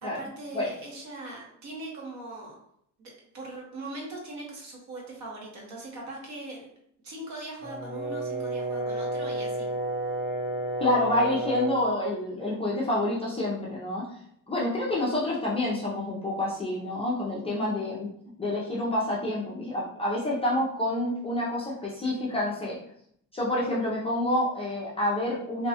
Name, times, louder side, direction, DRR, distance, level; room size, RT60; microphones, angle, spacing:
voice 1, 0.0-2.5 3.0-6.7 7.0-9.7, right 2 dB, 55° right, -1 dB, 0.9 m, -40 dB
Brass instrument, 7.6-11.9, right 1 dB, 70° right, 1.2 m, -31 dB
voice 2, 10.8-14.1 14.5-18.1 18.4-22.8 23.3-25.7, left 1 dB, 20° left, -6 dB, 0.4 m, -28 dB
2.7 x 2.1 x 2.7 m, 0.69 s
cardioid pair, 160°, 34 cm